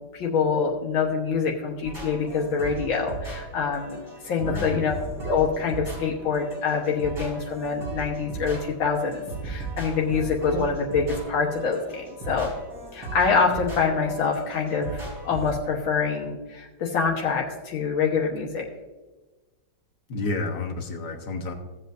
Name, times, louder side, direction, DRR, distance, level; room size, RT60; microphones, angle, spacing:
voice 1, 0.1-4.9 5.2-12.5 12.9-18.7, left 5 dB, 85° left, -2 dB, 2.1 m, -25 dB
sound 1, 1.8-15.6, right 3 dB, 60° right, 4.6 m, -37 dB
voice 2, 4.4-4.9 20.1-21.5, left 3 dB, 60° left, 4 dB, 1.7 m, -30 dB
16.5 x 7.9 x 2.6 m, 1.2 s
omnidirectional pair, 2.1 m